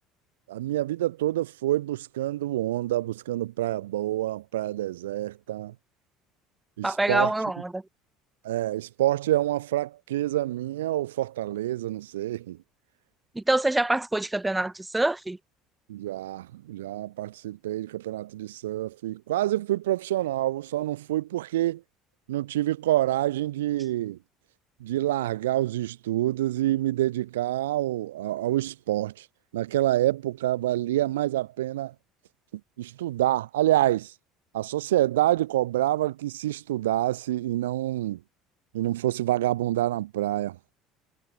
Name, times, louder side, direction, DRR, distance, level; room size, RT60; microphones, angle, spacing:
voice 1, 0.5-5.7 6.8-7.3 8.4-12.6 15.9-21.8 22.3-24.2 24.8-29.3 29.5-31.9 32.8-34.1 34.5-38.2 38.7-40.6, right 14 dB, 70° right, 2.6 m, -27 dB
voice 2, 6.8-7.8 13.3-15.4, right 2 dB, 10° right, 6.9 m, -25 dB
figure-of-eight pair, 60°, 0 cm